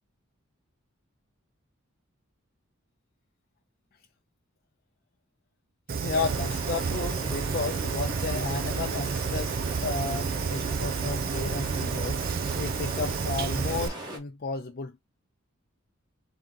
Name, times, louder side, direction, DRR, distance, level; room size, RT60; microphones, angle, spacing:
voice 1, 5.9-9.6 9.8-12.2 12.6-15.0, left 4 dB, 45° left, 0.5 m, -33 dB
Fire, 5.9-13.9, right 5 dB, 45° right, 0.4 m, -30 dB
sound 1, 6.1-14.2, right 1 dB, 20° right, 1.2 m, -39 dB
3.7 x 3.0 x 3.6 m
head